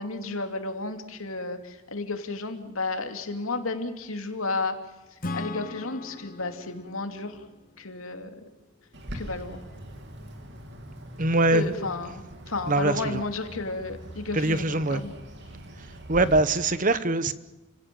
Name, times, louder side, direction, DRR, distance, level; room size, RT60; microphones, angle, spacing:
voice 1, 0.0-4.8 5.3-7.4 7.8-8.3 9.1-9.6 11.5-15.1, left 3 dB, 80° left, 6 dB, 2.7 m, -32 dB
Acoustic guitar / Strum, 5.2-8.8, left 2 dB, 40° left, 0.9 m, -39 dB
Bird, 8.9-16.4, equal, 55° right, 3.1 m, -42 dB
voice 2, 11.2-11.7 12.7-13.2 14.3-15.0 16.1-17.3, right 2 dB, 40° right, 14 dB, 1.1 m, -23 dB
30.0 x 17.0 x 7.7 m, 1.1 s
head